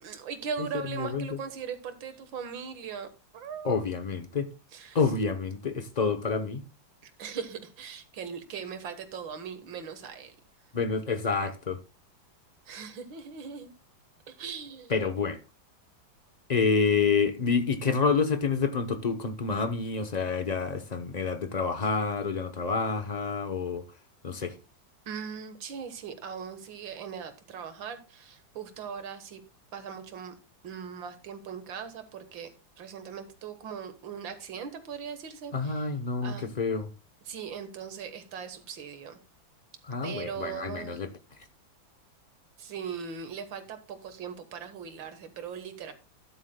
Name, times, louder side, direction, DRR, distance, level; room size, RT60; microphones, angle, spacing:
voice 1, 0.0-3.1 3.3-3.8 4.7-5.1 7.0-10.4 12.7-13.7 14.3-14.9 25.1-29.4 29.7-30.3 30.6-32.5 32.8-35.9 36.2-36.6 37.3-39.2 40.0-41.0 42.6-45.9, right 7 dB, 75° right, 2.0 m, -39 dB
voice 2, 1.0-1.4 3.6-4.5 4.9-6.6 10.7-11.8 14.9-15.4 16.5-23.8 24.2-24.6 35.5-36.9 39.9-41.1, left 5 dB, 75° left, 0.3 m, -28 dB
13.0 x 10.5 x 2.2 m
omnidirectional pair, 2.1 m